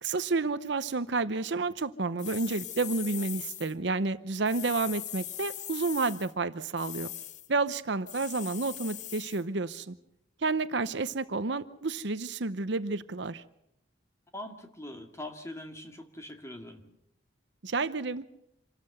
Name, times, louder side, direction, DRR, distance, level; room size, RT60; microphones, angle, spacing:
voice 1, 0.0-7.1 7.5-10.0 10.4-13.4 17.6-18.2, right 3 dB, 60° right, 13 dB, 0.7 m, -30 dB
sound 1, 2.2-3.7 4.4-6.3 6.8-7.5 8.1-9.4, left 11 dB, 40° left, 0.8 m, -40 dB
voice 2, 14.3-16.8, left 1 dB, 15° left, 4 dB, 2.1 m, -42 dB
27.0 x 13.0 x 7.9 m, 0.79 s
head